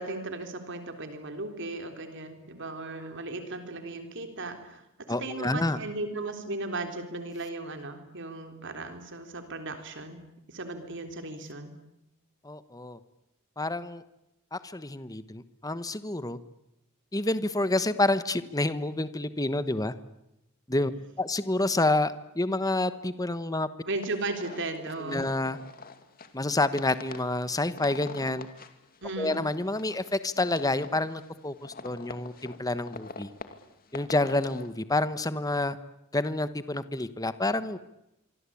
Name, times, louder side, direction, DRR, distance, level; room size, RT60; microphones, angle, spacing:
voice 1, 0.0-4.8 5.1-10.2 10.5-11.7 23.9-25.3 29.0-29.4, right 2 dB, 60° right, 6 dB, 3.5 m, -36 dB
voice 2, 5.1-5.8 12.4-13.0 13.6-14.0 14.5-16.4 17.1-19.9 20.7-20.9 21.2-23.7 25.0-25.6 26.3-28.5 29.2-33.3 33.9-35.8 36.1-37.8, left 2 dB, 15° left, 13 dB, 1.2 m, -28 dB
sound 1, 24.0-34.7, left 4 dB, 45° left, 2.5 m, -46 dB
26.0 x 25.0 x 8.6 m, 0.86 s
head